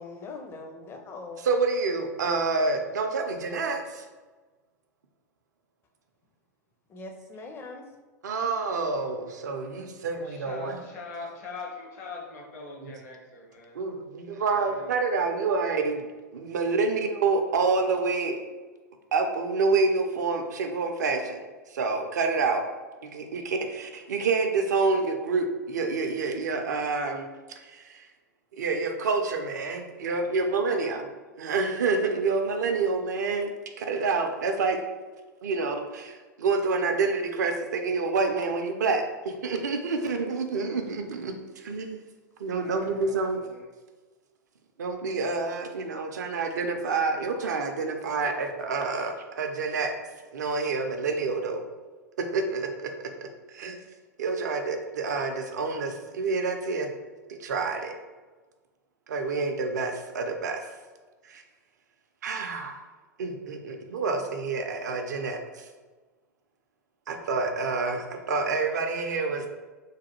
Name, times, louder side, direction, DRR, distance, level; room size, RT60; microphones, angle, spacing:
voice 1, 0.0-1.4 6.9-7.9, left 3 dB, 25° left, 4 dB, 0.5 m, -41 dB
voice 2, 1.4-4.1 8.2-10.8 12.8-12.9 13.7-18.4 19.1-22.6 23.0-28.1 28.5-31.1 31.4-34.8 35.4-42.0 42.4-43.4 44.8-49.9 50.3-51.6 52.3-52.9 53.2-53.8 54.2-56.9 57.3-57.9 59.1-60.6 61.2-61.4 62.2-62.8 63.2-65.7 67.1-69.5, right 4 dB, 75° right, 4 dB, 0.4 m, -28 dB
voice 3, 10.2-13.8 14.4-14.9 30.1-31.5 42.6-43.7, left 3 dB, 55° left, 0 dB, 0.9 m, -43 dB
3.1 x 2.2 x 2.9 m, 1.3 s
figure-of-eight pair, 90°, 9 cm